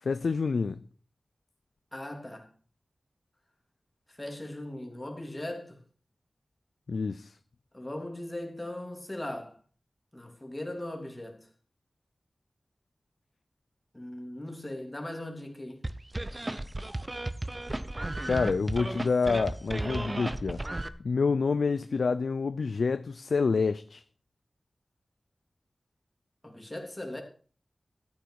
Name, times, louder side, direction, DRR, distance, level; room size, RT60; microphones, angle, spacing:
voice 1, 0.0-0.8 6.9-7.3 18.3-20.6 21.0-24.0, left 4 dB, 90° left, 0.4 m, -27 dB
voice 2, 1.9-2.5 4.1-5.8 7.7-9.6 10.1-11.5 13.9-15.8 26.4-27.2, left 1 dB, 15° left, 3.1 m, -39 dB
sound 1, 15.8-20.9, right 1 dB, 30° right, 0.9 m, -34 dB
13.0 x 9.4 x 4.7 m
wide cardioid pair, 75°, 0 cm